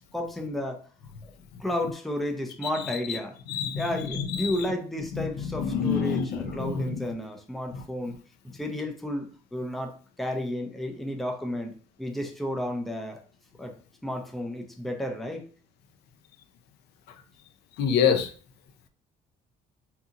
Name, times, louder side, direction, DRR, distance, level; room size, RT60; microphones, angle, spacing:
voice 1, 0.1-0.9 1.2-1.3 1.6-3.4 3.8-8.2 8.5-13.2 13.6-13.8 14.0-15.4, left 1 dB, ahead, 3 dB, 0.5 m, -32 dB
voice 2, 3.5-3.8 4.1-4.6 5.2-7.0 7.7-7.8 17.8-18.3, left 7 dB, 75° left, 6 dB, 0.5 m, -27 dB
2.7 x 2.6 x 2.4 m, 0.40 s
cardioid pair, 110°, 17 cm